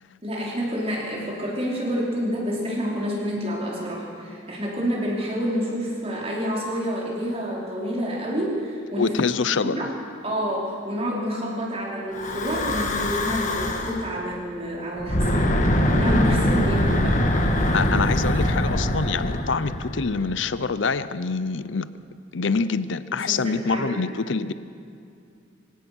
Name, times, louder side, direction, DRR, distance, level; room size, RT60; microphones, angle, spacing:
voice 1, 0.2-9.2 9.6-9.9 10.2-17.2 23.2-24.0, equal, 30° right, -3 dB, 5.0 m, -28 dB
voice 2, 9.0-9.9 17.7-21.9 22.3-24.5, left 4 dB, 70° left, 15 dB, 0.7 m, -25 dB
Breathing / Wind, 12.1-14.1 15.0-20.4, left 1 dB, 40° left, 2.0 m, -23 dB
26.0 x 17.0 x 6.2 m, 2.5 s
head